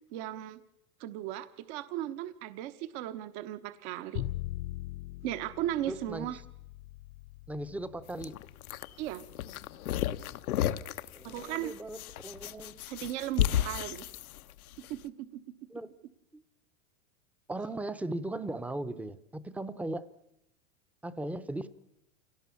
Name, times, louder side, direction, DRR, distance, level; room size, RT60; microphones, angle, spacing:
voice 1, 0.1-0.6 1.0-4.2 5.2-6.4 9.0-9.2 11.2-11.7 12.9-14.0 14.9-15.3, right 13 dB, 50° right, 11 dB, 1.2 m, -36 dB
Bowed string instrument, 4.1-10.3, left 16 dB, 55° left, 1.0 m, -42 dB
voice 2, 5.9-6.4 7.5-8.4 11.1-12.8 15.7-15.9 16.3-16.4 17.5-20.1 21.0-21.7, right 1 dB, 5° right, 13 dB, 0.8 m, -38 dB
sound 1, 8.1-14.9, left 12 dB, 85° left, 1.1 m, -33 dB
27.0 x 18.0 x 7.1 m, 0.85 s
supercardioid pair, 130°, 42 cm